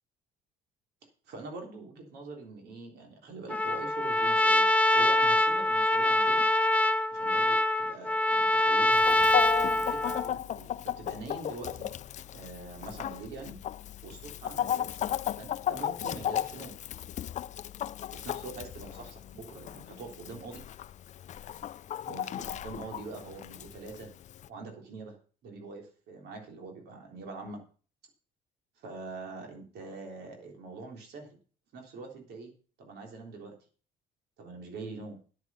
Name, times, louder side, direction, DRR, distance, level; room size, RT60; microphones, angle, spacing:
voice 1, 1.3-6.5 7.1-9.2 9.7-11.9 12.3-13.6 14.0-16.7 18.2-20.6 22.1-24.1 24.5-25.2 25.4-27.6 28.8-31.4 31.7-32.5 32.8-33.5 34.4-35.2, right 3 dB, 75° right, 3 dB, 3.6 m, -44 dB
Trumpet, 3.5-10.3, left 1 dB, 10° left, 0.7 m, -24 dB
Chicken rooster, 8.9-24.5, left 11 dB, 45° left, 0.4 m, -35 dB
9.5 x 9.2 x 5.6 m, 0.40 s
cardioid pair, 110°, 17 cm